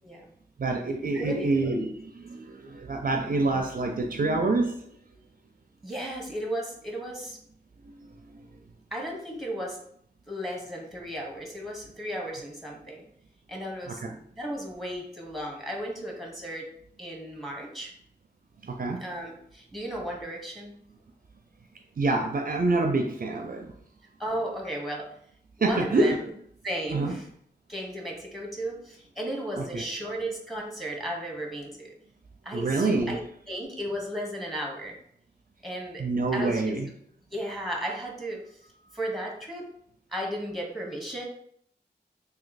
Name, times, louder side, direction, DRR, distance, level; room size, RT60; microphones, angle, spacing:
voice 1, 0.6-4.9 7.8-7.9 8.3-8.5 13.9-14.2 18.6-19.0 22.0-23.7 25.6-26.2 26.9-27.1 29.6-29.8 32.5-33.2 36.0-36.9, right 2 dB, 50° right, 4 dB, 0.4 m, -27 dB
voice 2, 1.1-1.7 5.8-7.4 8.9-9.8 10.3-13.0 13.5-14.0 14.4-16.7 17.0-17.9 19.0-20.8 24.2-25.1 25.6-26.2 26.6-27.2 27.7-31.9 32.4-33.2 33.5-34.9 35.6-36.0 36.3-36.7 37.3-38.4 38.9-39.7 40.1-41.2, right 1 dB, ahead, -1 dB, 1.1 m, -34 dB
3.0 x 2.7 x 4.0 m, 0.67 s
wide cardioid pair, 60°, 18 cm